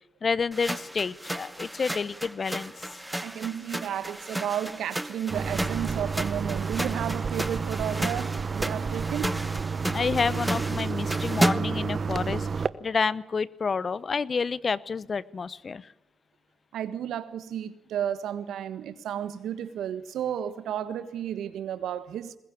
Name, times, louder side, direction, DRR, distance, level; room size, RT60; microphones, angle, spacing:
voice 1, 0.2-2.7 9.8-15.9, left 5 dB, 45° left, 0.9 m, -29 dB
sound 1, 0.5-11.9, right 1 dB, 5° right, 1.1 m, -33 dB
voice 2, 3.2-9.4 16.7-22.4, right 9 dB, 75° right, 1.5 m, -33 dB
sound 2, 5.3-12.7, right 5 dB, 45° right, 1.0 m, -30 dB
22.0 x 20.5 x 8.8 m
supercardioid pair, 55°, 0 cm